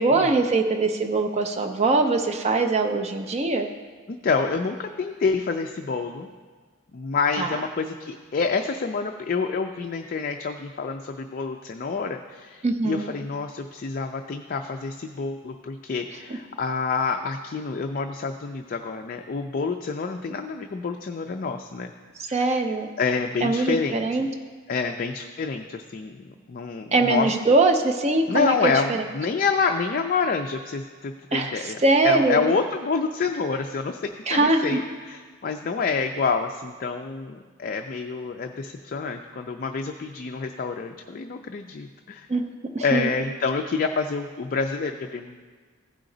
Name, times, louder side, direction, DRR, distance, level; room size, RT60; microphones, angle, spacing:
voice 1, 0.0-3.7 7.4-7.5 12.6-13.1 22.3-22.9 23.4-24.3 26.9-29.0 31.3-32.5 34.3-34.8 42.3-42.4 42.7-43.1, right 3 dB, 30° right, 5 dB, 0.5 m, -22 dB
voice 2, 4.1-6.3 6.9-21.9 22.3-22.6 23.0-24.3 24.7-27.3 28.3-34.0 34.3-42.3 42.8-45.4, left 4 dB, 40° left, 4 dB, 0.3 m, -28 dB
15.0 x 5.0 x 3.8 m, 1.5 s
head